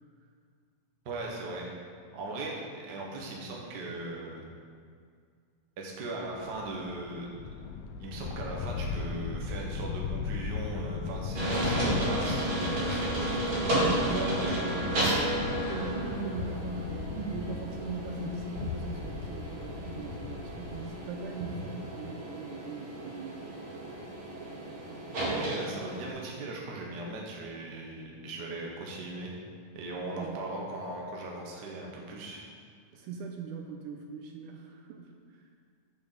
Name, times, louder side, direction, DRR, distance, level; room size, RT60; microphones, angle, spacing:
voice 1, 1.0-1.7 2.1-4.4 5.8-7.3 8.0-13.8 14.2-14.9 21.4-21.6 25.2-29.3 29.7-32.4, right 2 dB, 60° right, -2 dB, 1.1 m, -38 dB
sound 1, 6.3-20.9, left 5 dB, 85° left, 2.2 m, -37 dB
sound 2, 11.4-26.1, right 1 dB, 40° right, 2.7 m, -33 dB
voice 2, 13.7-14.9 15.7-23.5 30.1-30.4 32.9-35.4, right 3 dB, 80° right, 2 dB, 2.0 m, -40 dB
6.8 x 6.6 x 6.7 m, 2.1 s
omnidirectional pair, 3.9 m